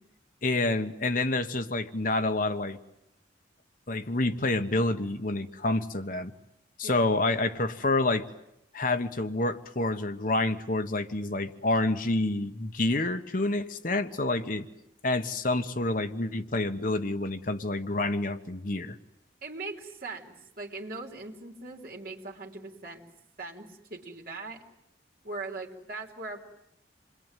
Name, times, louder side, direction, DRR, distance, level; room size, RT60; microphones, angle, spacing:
voice 1, 0.4-2.8 3.9-6.3 6.8-8.2 8.7-14.7 15.0-19.0, left 2 dB, 45° left, 8 dB, 1.2 m, -28 dB
voice 2, 6.8-7.1 19.4-23.0 23.4-24.6 25.2-26.5, right 3 dB, 50° right, 0 dB, 3.6 m, -40 dB
28.0 x 22.0 x 9.2 m, 0.82 s
head